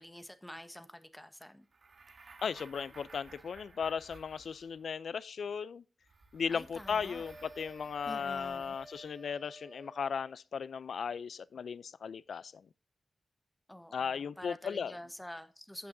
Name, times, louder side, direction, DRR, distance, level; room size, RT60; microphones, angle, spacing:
voice 1, 0.0-1.6 6.5-7.2 8.0-8.8 13.7-15.9, left 1 dB, 5° left, 1.1 m, -48 dB
sound 1, 1.7-5.0 6.0-9.2, right 3 dB, 55° right, 1.4 m, -57 dB
voice 2, 2.4-5.8 6.3-12.6 13.9-14.9, left 6 dB, 85° left, 0.4 m, -36 dB
sound 2, 6.8-10.3, right 1 dB, 10° right, 2.8 m, -53 dB
16.0 x 5.9 x 2.6 m
wide cardioid pair, 100°, 0 cm